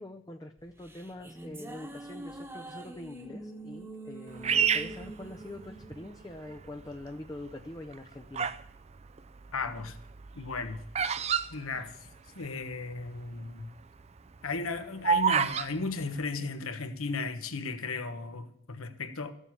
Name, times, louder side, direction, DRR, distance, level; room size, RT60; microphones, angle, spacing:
voice 1, 0.0-8.5, left 1 dB, 15° left, 0.5 m, -44 dB
sound 1, 0.6-7.1, right 2 dB, 10° right, 1.2 m, -45 dB
Bird vocalization bird call bird song, 4.4-5.9 6.6-7.0 7.8-8.7 9.0-12.5 12.7-12.8 13.0-13.4 13.8-15.7, right 7 dB, 30° right, 0.4 m, -29 dB
voice 2, 9.5-10.0 10.3-10.9 11.5-11.9 12.3-13.7 14.4-19.3, left 4 dB, 85° left, 1.3 m, -35 dB
14.0 x 7.2 x 8.6 m
head